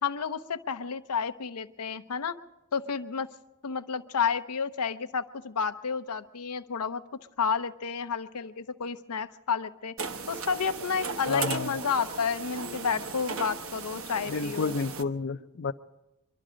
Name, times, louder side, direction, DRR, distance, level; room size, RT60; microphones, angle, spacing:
voice 1, 0.0-2.4 2.7-3.3 3.6-7.0 7.4-9.9 10.3-14.8, left 6 dB, 90° left, 10 dB, 0.7 m, -31 dB
sound 1, 10.0-15.0, right 4 dB, 65° right, 1.0 m, -36 dB
voice 2, 11.3-11.8 14.3-15.7, left 4 dB, 55° left, 7 dB, 0.5 m, -31 dB
24.5 x 11.5 x 5.0 m, 0.97 s
head